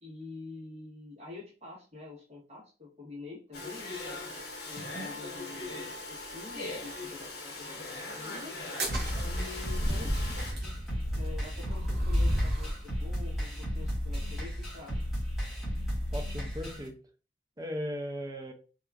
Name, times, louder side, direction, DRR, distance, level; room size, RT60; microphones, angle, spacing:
voice 1, 0.0-4.2 4.6-8.5 9.2-10.8 11.1-15.0, left 3 dB, 40° right, -4 dB, 1.3 m, -47 dB
Domestic sounds home sounds, 3.5-10.5, left 2 dB, 65° left, 0.7 m, -40 dB
sound 1, 8.6-12.8, equal, 65° right, 1.0 m, -32 dB
sound 2, 8.9-16.9, equal, ahead, 1.2 m, -34 dB
voice 2, 16.1-17.0 17.6-18.5, equal, 20° right, 4 dB, 0.4 m, -37 dB
2.8 x 2.3 x 2.3 m, 0.35 s
head